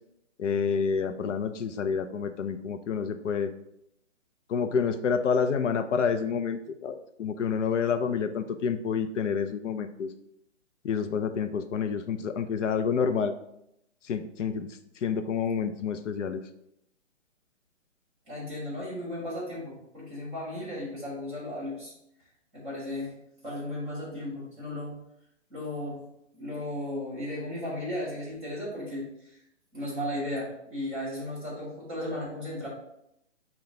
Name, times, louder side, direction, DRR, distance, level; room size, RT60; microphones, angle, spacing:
voice 1, 0.4-3.5 4.5-10.1 10.8-13.3 14.0-16.4, left 6 dB, 85° left, 9 dB, 0.5 m, -28 dB
voice 2, 18.3-21.9 22.5-23.1 23.4-24.9 25.5-26.0 26.4-29.4 29.7-32.7, left 1 dB, 5° right, -7 dB, 1.3 m, -35 dB
5.8 x 2.3 x 3.7 m, 0.79 s
hypercardioid pair, 175°, 36 cm